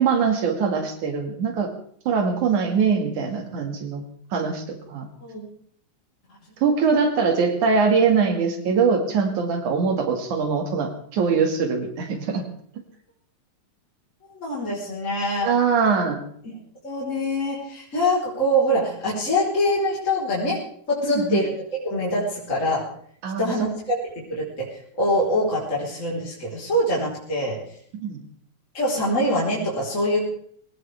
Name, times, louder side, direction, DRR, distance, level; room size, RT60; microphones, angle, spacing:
voice 1, 0.0-1.7 2.1-4.0 4.3-5.1 6.6-12.4 15.4-16.2 21.0-21.4 23.2-23.7 27.9-28.2, right 5 dB, 85° right, 4 dB, 3.5 m, -22 dB
voice 2, 14.3-15.5 16.4-16.5 16.8-20.6 20.9-21.5 21.8-22.9 23.4-23.7 24.3-24.7 25.0-27.6 28.7-30.3, equal, 25° left, -6 dB, 4.3 m, -24 dB
21.5 x 17.5 x 3.4 m, 0.63 s
omnidirectional pair, 3.4 m